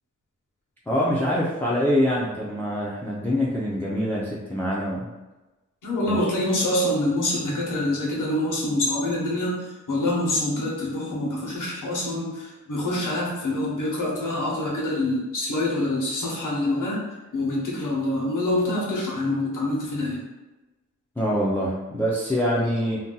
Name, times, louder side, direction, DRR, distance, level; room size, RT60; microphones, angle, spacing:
voice 1, 0.9-5.1 6.1-6.2 21.2-23.0, equal, 5° left, -6 dB, 0.4 m, -24 dB
voice 2, 5.8-17.0 17.3-20.3, left 1 dB, 85° left, -3 dB, 1.0 m, -26 dB
2.7 x 2.2 x 3.8 m, 1.1 s
wide cardioid pair, 155°, 31 cm